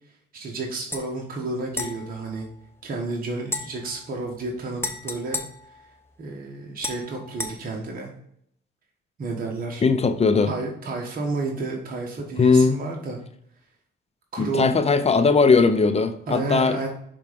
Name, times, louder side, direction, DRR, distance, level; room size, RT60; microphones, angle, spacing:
voice 1, 0.3-2.5 2.8-5.8 6.2-8.1 9.2-9.8 10.5-13.2 14.3-14.7 16.3-16.9, right 3 dB, 45° right, 0 dB, 1.3 m, -31 dB
sound 1, 0.9-1.1 1.7-3.0 3.4-6.3 6.8-7.5, left 2 dB, 10° left, 1.0 m, -35 dB
voice 2, 9.8-10.5 12.4-12.8 14.4-16.8, left 4 dB, 30° left, 10 dB, 0.6 m, -19 dB
5.9 x 3.6 x 5.1 m, 0.70 s
cardioid pair, 90°, 20 cm